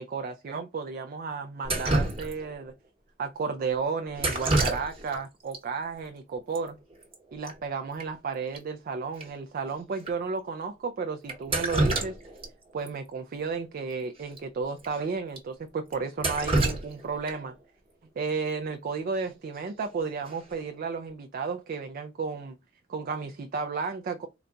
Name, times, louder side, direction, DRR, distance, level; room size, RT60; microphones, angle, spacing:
voice 1, 0.0-2.7 3.2-6.8 7.3-12.2 12.7-17.6 18.2-22.6 22.9-24.3, right 5 dB, 45° right, 0.4 m, -33 dB
Drip, 1.6-2.6 4.2-5.2 5.5-5.6 6.6-6.7 6.9-7.2 7.5-7.6 8.0-8.1 8.5-8.6 9.2-9.3 10.0-10.1 11.3-12.5 12.9-13.0 14.3-14.4 14.8-14.9 15.4-15.5 15.9-17.6 19.6-19.9 20.3-20.7, right 2 dB, 30° right, 1.1 m, -28 dB
4.0 x 2.2 x 3.7 m
head